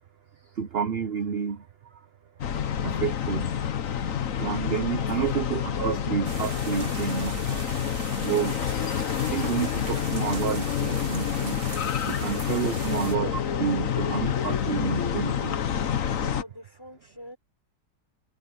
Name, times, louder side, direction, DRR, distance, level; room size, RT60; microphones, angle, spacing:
voice 1, 0.6-1.6 2.8-3.5 4.4-7.6 8.2-8.6 9.3-11.6 12.1-15.5, right 7 dB, 50° right, 0.7 m, -29 dB
sound 1, 2.4-16.4, left 8 dB, 50° left, 1.3 m, -28 dB
sound 2, 6.2-13.2, right 4 dB, 30° right, 1.5 m, -40 dB
voice 2, 16.2-17.4, equal, 15° left, 6.1 m, -44 dB
omnidirectional pair, 1.9 m